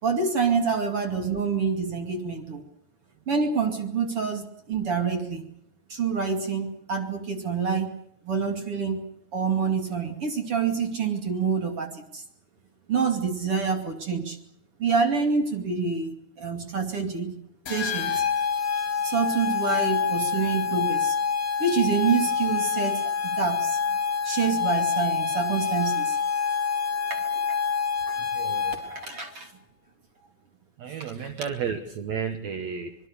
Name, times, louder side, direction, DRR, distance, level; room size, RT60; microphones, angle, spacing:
voice 1, 0.0-2.6 3.3-5.4 5.9-7.9 8.2-9.0 9.3-12.2 12.9-14.4 14.8-17.3 17.7-18.2 19.0-21.2 21.6-24.0 24.2-26.2 27.1-27.4 28.1-28.2 28.8-29.5 31.2-31.3, right 5 dB, 40° right, 5 dB, 2.8 m, -27 dB
sound 1, 17.7-29.0, left 6 dB, 40° left, 4.2 m, -27 dB
voice 2, 28.3-29.0 30.8-33.0, right 7 dB, 70° right, 9 dB, 1.7 m, -33 dB
25.5 x 21.5 x 6.7 m, 0.73 s
omnidirectional pair, 4.8 m